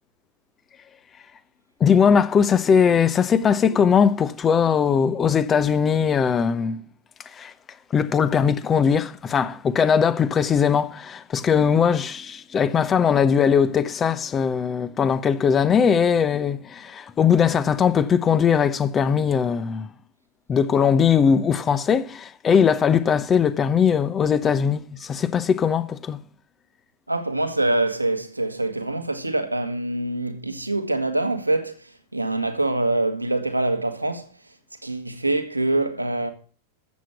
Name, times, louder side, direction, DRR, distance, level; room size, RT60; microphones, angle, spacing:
voice 1, 1.8-6.8 7.3-7.5 7.9-19.9 20.5-26.2, left 7 dB, 25° left, 0.9 m, -20 dB
voice 2, 27.1-34.3 34.8-36.3, right 2 dB, 85° right, 1.6 m, -25 dB
13.5 x 7.7 x 5.8 m
figure-of-eight pair, 90°, 0 cm